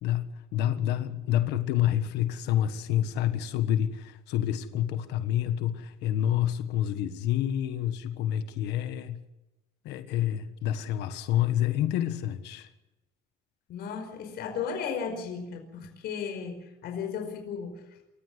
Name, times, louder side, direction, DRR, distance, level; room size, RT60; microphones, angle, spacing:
voice 1, 0.0-9.2 9.8-12.7, left 11 dB, 90° left, 1.5 m, -28 dB
voice 2, 0.7-1.2 13.7-17.8, left 6 dB, 70° left, 5.2 m, -35 dB
28.0 x 15.0 x 8.2 m
cardioid pair, 110°, 17 cm